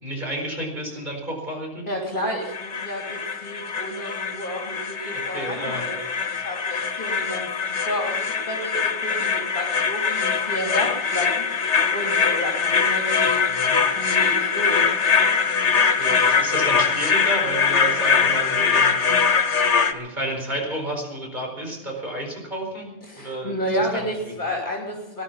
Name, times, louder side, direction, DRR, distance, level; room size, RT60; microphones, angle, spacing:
voice 1, 0.0-1.8 5.1-5.8 13.5-13.7 16.0-19.0 19.9-22.9 23.2-23.5 23.8-24.3, right 1 dB, 40° right, 0 dB, 4.7 m, -31 dB
voice 2, 1.9-14.9 23.0-25.2, equal, 45° left, -1 dB, 3.2 m, -31 dB
sound 1, 2.4-19.9, left 6 dB, 85° left, 1.6 m, -22 dB
20.5 x 11.5 x 5.6 m, 1.0 s
omnidirectional pair, 1.2 m